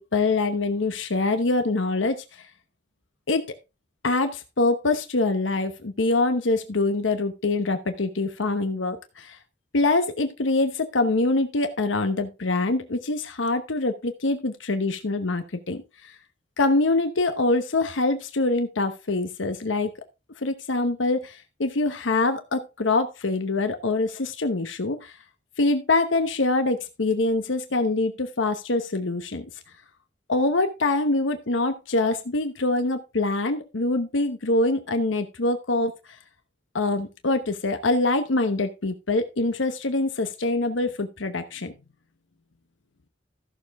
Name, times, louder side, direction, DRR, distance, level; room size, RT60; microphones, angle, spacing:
voice 1, 0.0-2.5 3.3-3.5 4.0-9.4 9.7-16.1 16.6-19.9 20.4-25.2 25.6-29.5 30.3-35.9 36.7-41.7, left 2 dB, 85° left, 8 dB, 1.0 m, -24 dB
14.0 x 6.7 x 3.5 m, 0.27 s
head